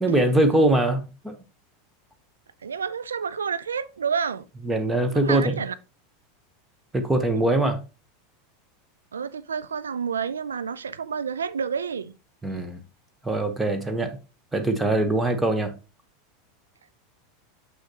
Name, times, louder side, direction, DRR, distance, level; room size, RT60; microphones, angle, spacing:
voice 1, 0.0-1.4 4.7-5.6 6.9-7.8 12.4-12.8 13.2-14.2 14.5-15.7, right 1 dB, 10° right, 1.0 m, -22 dB
voice 2, 2.6-4.4 5.1-5.7 9.1-12.1, right 6 dB, 75° right, 0.4 m, -29 dB
6.3 x 6.2 x 2.9 m
figure-of-eight pair, 85°, 0 cm